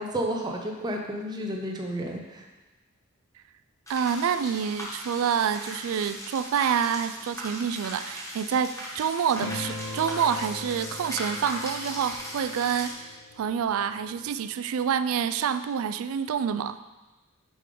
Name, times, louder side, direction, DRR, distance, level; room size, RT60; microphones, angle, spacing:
voice 1, 0.0-2.5, right 1 dB, 20° right, 1 dB, 0.6 m, -31 dB
sound 1, 3.9-12.9, equal, 15° left, 1.0 m, -38 dB
voice 2, 3.9-12.9 13.4-16.8, right 7 dB, 70° right, 12 dB, 0.3 m, -27 dB
sound 2, 9.4-14.3, left 2 dB, 75° left, 0.8 m, -40 dB
6.5 x 5.1 x 3.8 m, 1.1 s
head